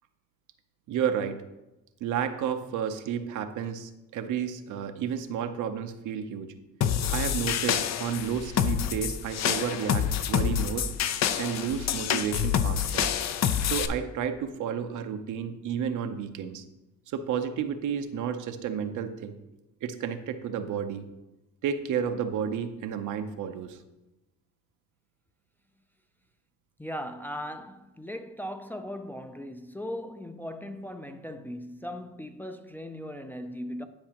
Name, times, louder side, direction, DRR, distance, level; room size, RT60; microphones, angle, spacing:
voice 1, 0.9-1.4 2.0-6.5 7.1-10.8 11.4-13.1 13.6-16.6 17.1-19.3 19.8-21.0 21.6-23.8, right 8 dB, 80° right, 0.7 m, -31 dB
sound 1, 6.8-13.9, left 9 dB, 60° left, 0.5 m, -27 dB
voice 2, 26.8-33.8, equal, 5° left, 0.4 m, -38 dB
10.5 x 4.8 x 2.9 m
cardioid pair, 90°, 30 cm